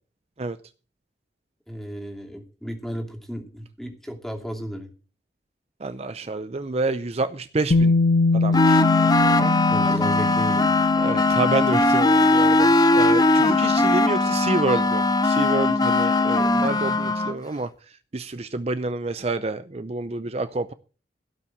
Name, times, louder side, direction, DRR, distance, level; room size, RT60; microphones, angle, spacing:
voice 1, 1.7-4.9 9.7-10.9, equal, ahead, 2 dB, 2.6 m, -34 dB
voice 2, 5.8-7.9 8.3-9.5 11.0-17.7 18.1-20.7, right 2 dB, 35° right, 12 dB, 0.6 m, -28 dB
Bass guitar, 7.7-13.8, left 3 dB, 80° left, 1.0 m, -24 dB
sound 1, 8.5-17.4, left 2 dB, 20° left, 0.8 m, -19 dB
16.5 x 5.9 x 7.9 m, 0.38 s
head